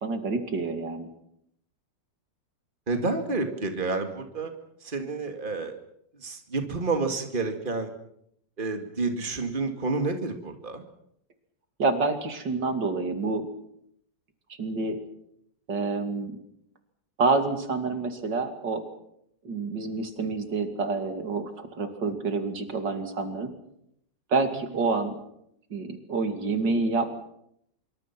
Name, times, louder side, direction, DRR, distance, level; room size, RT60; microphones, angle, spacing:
voice 1, 0.0-1.1 11.8-13.5 14.6-15.0 15.7-16.3 17.2-18.8 19.5-23.5 24.3-25.2 25.7-27.2, right 3 dB, 80° right, 6 dB, 3.3 m, -28 dB
voice 2, 2.9-4.5 4.8-5.8 6.2-7.9 8.6-10.8, right 3 dB, 30° right, 5 dB, 2.5 m, -29 dB
26.0 x 24.0 x 6.1 m, 0.74 s
omnidirectional pair, 1.9 m